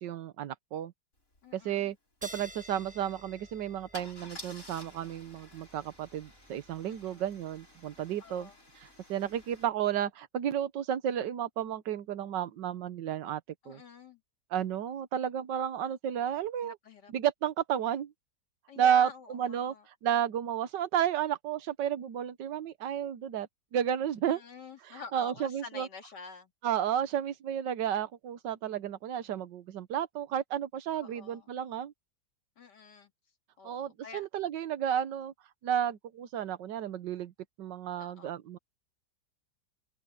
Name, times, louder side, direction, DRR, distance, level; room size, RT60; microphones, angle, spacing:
voice 1, 0.0-0.9 1.5-2.0 2.2-8.5 8.8-13.4 13.7-13.8 14.5-16.7 17.1-18.1 18.8-19.7 20.0-24.4 24.8-25.9 26.6-31.9 33.6-35.3 35.6-37.3 37.6-38.6, right 9 dB, 90° right, 1.6 m, -32 dB
Car / Engine starting / Idling, 1.3-1.4 1.7-1.9 3.9-9.7, left 2 dB, 50° left, 7.0 m, -51 dB
voice 2, 1.4-1.9 6.9-7.2 8.2-8.6 13.6-14.2 16.6-17.1 18.7-19.9 24.3-26.5 31.0-31.5 32.6-33.1 33.6-34.3 37.9-38.4, left 5 dB, 75° left, 2.9 m, -48 dB
sound 1, 2.2-9.2, equal, 5° right, 1.2 m, -53 dB
omnidirectional pair, 1.8 m